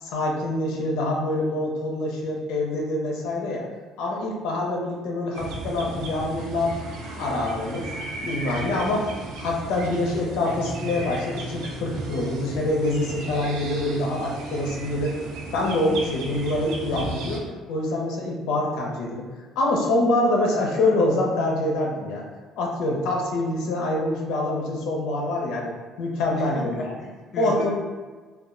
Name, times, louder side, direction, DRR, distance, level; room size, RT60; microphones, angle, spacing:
voice 1, 0.0-3.6 4.0-6.7 7.2-7.9 8.2-9.1 9.4-15.2 15.5-17.4 17.7-19.2 19.6-22.2 22.6-25.7 26.0-26.8 27.4-27.7, left 2 dB, 90° left, -1 dB, 0.6 m, -25 dB
sound 1, 5.3-17.4, right 2 dB, 85° right, 0.5 m, -35 dB
voice 2, 26.3-27.7, left 1 dB, 40° left, -1 dB, 0.4 m, -36 dB
2.3 x 2.1 x 3.6 m, 1.4 s
cardioid pair, 145°, 0 cm